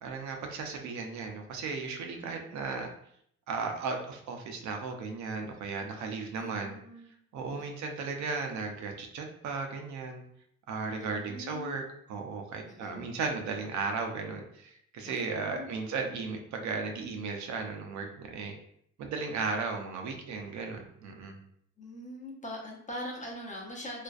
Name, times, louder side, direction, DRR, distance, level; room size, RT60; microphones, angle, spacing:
voice 1, 0.0-2.9 3.5-6.7 7.3-10.2 10.7-11.8 12.1-18.5 19.0-21.4, right 4 dB, 70° right, 3 dB, 0.5 m, -35 dB
voice 2, 2.2-2.6 6.3-7.1 7.5-7.6 11.0-11.8 12.6-13.3 15.0-15.7 21.8-24.0, left 1 dB, 25° left, -2 dB, 0.7 m, -43 dB
2.5 x 2.2 x 2.3 m, 0.68 s
cardioid pair, 75°, 30 cm